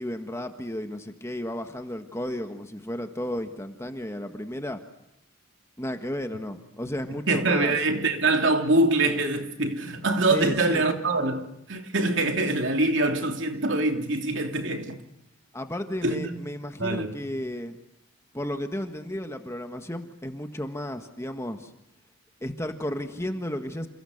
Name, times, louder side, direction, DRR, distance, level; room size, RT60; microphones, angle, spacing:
voice 1, 0.0-4.8 5.8-7.7 10.3-10.9 15.5-17.8 18.3-21.7 22.4-23.9, left 1 dB, 15° left, 1.6 m, -33 dB
voice 2, 7.3-14.9 16.0-16.3 16.8-17.1, right 2 dB, 60° right, 3.2 m, -24 dB
28.5 x 28.0 x 6.7 m
head